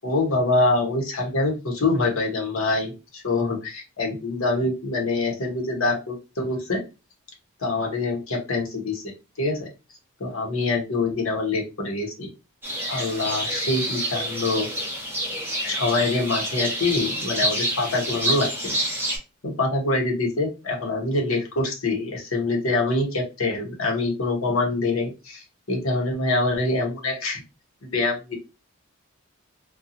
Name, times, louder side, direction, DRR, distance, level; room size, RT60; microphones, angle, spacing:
voice 1, 0.0-6.8 7.6-9.0 9.4-9.7 10.2-12.3 12.9-14.7 15.6-18.8 19.4-27.4 27.8-28.3, left 2 dB, 75° left, -1 dB, 1.0 m, -25 dB
sound 1, 12.6-19.2, right 1 dB, 10° right, 0.7 m, -28 dB
2.7 x 2.3 x 2.5 m, 0.29 s
head